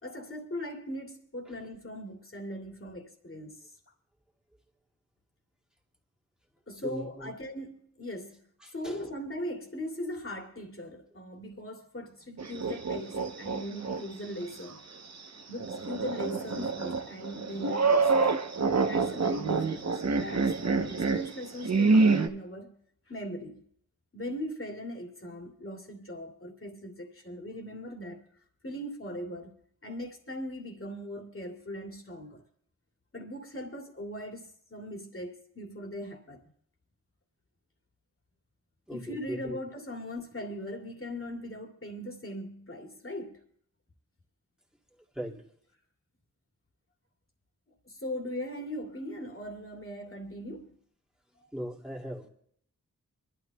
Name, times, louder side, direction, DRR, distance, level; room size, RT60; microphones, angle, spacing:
voice 1, 0.0-3.7 6.7-8.4 8.7-14.8 15.5-18.3 18.8-22.7 23.1-23.6 24.1-28.3 28.6-32.4 33.1-36.4 38.9-43.4 47.9-50.8, equal, 40° left, 2.6 m, -39 dB
voice 2, 6.7-7.3 8.6-9.1 38.9-39.6 45.1-45.4 51.5-52.3, equal, ahead, 2.4 m, -39 dB
sound 1, 12.4-14.0 14.4-14.5 15.6-22.3, right 4 dB, 50° right, 1.0 m, -27 dB
26.0 x 12.0 x 2.3 m
wide cardioid pair, 75°, 33 cm